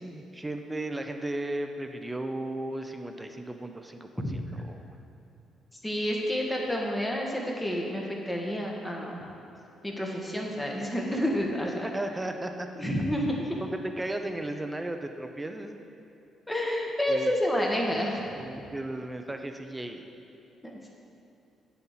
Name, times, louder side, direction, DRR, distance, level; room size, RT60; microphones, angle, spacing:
voice 1, 0.0-5.0 11.8-12.7 13.6-15.7 17.1-17.3 17.9-18.0 18.3-20.1, right 1 dB, 15° right, 6 dB, 0.7 m, -35 dB
voice 2, 5.8-9.2 9.8-11.9 12.8-13.6 16.5-18.3 20.6-20.9, equal, 10° left, -1 dB, 1.5 m, -29 dB
9.4 x 4.3 x 7.5 m, 2.8 s
cardioid pair, 90°, 0 cm